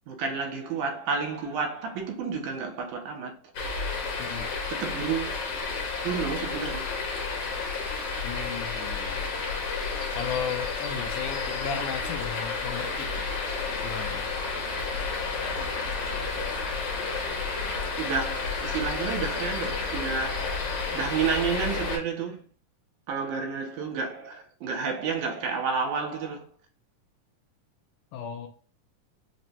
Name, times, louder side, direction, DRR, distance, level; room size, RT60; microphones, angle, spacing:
voice 1, 0.1-3.4 4.7-5.4 6.0-6.9 18.0-22.4 23.1-26.5, right 5 dB, 75° right, 2.1 m, -30 dB
sound 1, 3.5-22.0, left 4 dB, 65° left, 1.7 m, -31 dB
voice 2, 8.2-9.2 10.2-13.3 13.8-14.3 28.1-28.5, left 7 dB, 80° left, 2.0 m, -35 dB
5.0 x 2.1 x 2.8 m
omnidirectional pair, 3.7 m